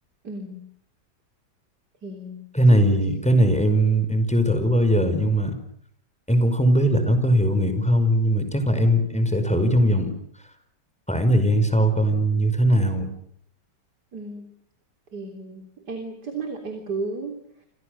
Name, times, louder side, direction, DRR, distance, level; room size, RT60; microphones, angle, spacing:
voice 1, 0.2-0.6 2.0-2.8 14.1-14.5 15.1-17.7, right 3 dB, 65° right, 4 dB, 4.0 m, -34 dB
voice 2, 2.5-5.6 6.3-10.1 11.1-13.1, equal, 5° left, 8 dB, 5.3 m, -20 dB
29.0 x 27.5 x 6.6 m, 0.63 s
omnidirectional pair, 1.9 m